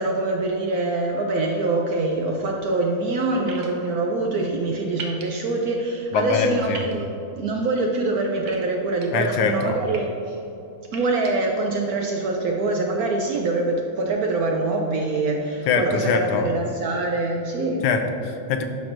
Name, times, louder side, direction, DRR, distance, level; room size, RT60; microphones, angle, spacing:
voice 1, 0.0-7.1 7.3-10.4 10.9-17.8, right 2 dB, 85° right, 0 dB, 0.8 m, -24 dB
sound 1, 3.5-3.7 5.0-5.2 6.7-6.9 8.5-9.0 9.7-10.0 10.8-11.3, right 4 dB, 60° right, 1.1 m, -37 dB
voice 2, 6.1-6.8 9.1-9.8 15.7-16.5 17.8-18.7, left 5 dB, 80° left, 6 dB, 1.5 m, -23 dB
10.5 x 6.0 x 2.6 m, 2.9 s
omnidirectional pair, 2.3 m